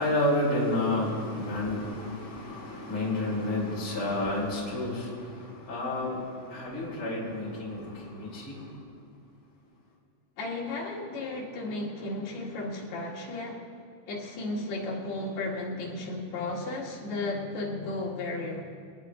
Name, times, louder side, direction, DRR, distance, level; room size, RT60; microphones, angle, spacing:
voice 1, 0.0-8.8, left 1 dB, 20° left, -5 dB, 3.8 m, -30 dB
voice 2, 10.4-13.6 14.1-18.6, left 2 dB, 60° left, -4 dB, 3.7 m, -34 dB
23.0 x 19.0 x 2.6 m, 2.2 s
omnidirectional pair, 5.7 m